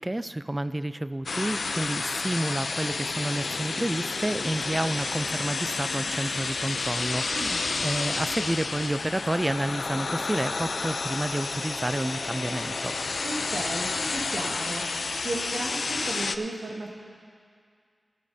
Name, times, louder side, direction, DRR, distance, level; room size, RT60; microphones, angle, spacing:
voice 1, 0.0-13.0, right 1 dB, 20° right, 14 dB, 0.3 m, -30 dB
sound 1, 1.3-16.4, left 3 dB, 75° left, 0.4 m, -30 dB
voice 2, 7.3-7.7 13.2-14.8 15.2-17.0, right 2 dB, 80° right, -1 dB, 1.7 m, -34 dB
17.0 x 12.0 x 2.7 m, 2.1 s
cardioid pair, 55°, 0 cm